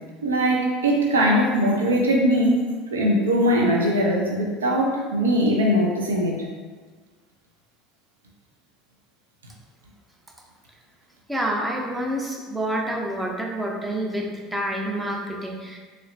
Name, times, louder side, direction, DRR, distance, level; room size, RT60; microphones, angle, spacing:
voice 1, 0.2-2.6 2.9-6.4, equal, 90° right, -1 dB, 0.5 m, -21 dB
voice 2, 11.3-15.8, right 1 dB, 10° right, -1 dB, 0.7 m, -28 dB
4.0 x 3.1 x 2.6 m, 1.4 s
hypercardioid pair, 75°, 0 cm